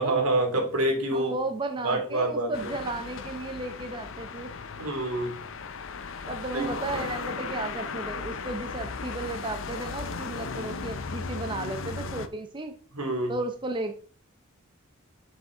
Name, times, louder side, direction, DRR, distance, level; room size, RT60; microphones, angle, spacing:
voice 1, 0.0-1.3 1.8-2.7 4.8-5.4 6.5-7.0 12.9-13.4, right 2 dB, 90° right, 2 dB, 2.5 m, -27 dB
voice 2, 1.1-4.5 6.3-12.7 13.3-13.9, right 2 dB, 20° right, 6 dB, 0.6 m, -34 dB
sound 1, 2.5-12.3, left 4 dB, 60° left, 0.6 m, -36 dB
6.8 x 6.7 x 3.8 m, 0.40 s
head